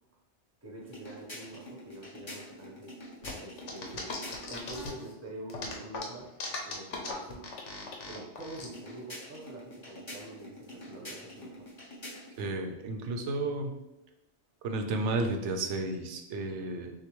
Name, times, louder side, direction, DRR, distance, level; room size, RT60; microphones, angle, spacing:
voice 1, 0.6-2.9 3.4-4.1 4.5-6.3 6.6-7.5 8.1-11.7, right 1 dB, 15° right, -3 dB, 0.8 m, -46 dB
sound 1, 0.8-4.7 8.6-12.5, equal, 25° left, 0.9 m, -46 dB
sound 2, 3.2-5.1 5.5-8.7, left 3 dB, 80° left, 1.1 m, -39 dB
voice 2, 12.4-13.7 14.6-16.9, right 2 dB, 75° right, 5 dB, 0.9 m, -32 dB
6.4 x 2.2 x 3.0 m, 0.96 s
omnidirectional pair, 1.2 m